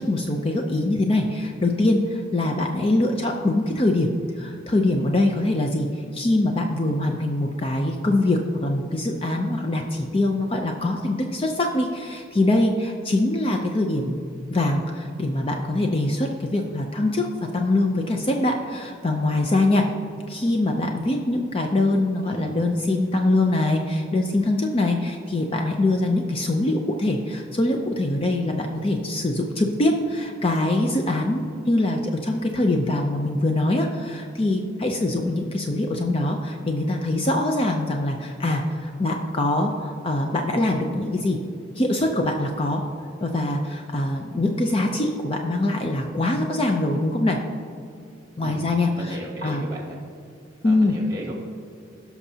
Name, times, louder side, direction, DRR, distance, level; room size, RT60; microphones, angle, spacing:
voice 1, 0.0-4.1 4.4-14.2 14.5-19.9 20.3-41.4 41.8-42.8 43.2-47.4 48.4-49.6 50.6-50.9, left 2 dB, 30° left, 3 dB, 0.5 m, -23 dB
voice 2, 49.0-50.0 50.6-51.3, right 1 dB, 20° right, -1 dB, 1.8 m, -35 dB
17.0 x 6.0 x 2.8 m, 2.4 s
head